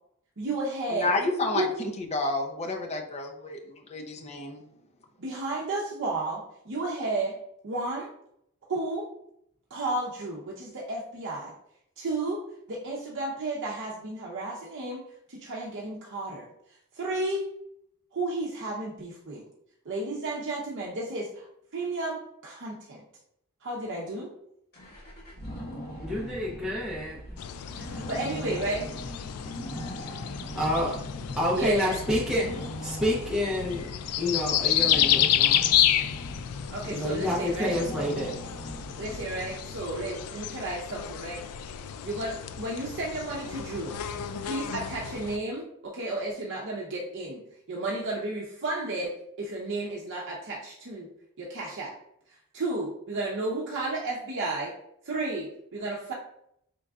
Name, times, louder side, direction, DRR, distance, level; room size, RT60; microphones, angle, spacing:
voice 1, 0.4-1.1 1.5-1.8 5.2-7.4 7.6-8.1 8.7-9.1 9.7-11.5 12.0-12.4 12.7-16.5 16.9-17.5 18.1-19.4 19.8-23.0 23.6-24.3 27.8-28.8 31.5-32.0 36.7-37.8 39.0-41.4 42.0-43.9 44.4-47.4 47.7-49.1 49.4-51.1 51.4-52.0 52.3-54.7 55.0-56.1, right 2 dB, 55° right, -3 dB, 0.7 m, -32 dB
voice 2, 0.9-1.7 2.1-3.6 3.9-4.6, left 2 dB, 30° left, 3 dB, 0.6 m, -29 dB
sound 1, 24.7-40.2, equal, 45° left, 1.4 m, -41 dB
voice 3, 26.0-27.2 30.5-30.9 31.4-32.5 32.8-33.9 34.2-35.7 36.9-38.3, left 1 dB, ahead, -6 dB, 0.8 m, -28 dB
sound 2, 27.4-45.4, left 10 dB, 85° left, 0.3 m, -30 dB
5.3 x 3.7 x 2.4 m, 0.74 s
head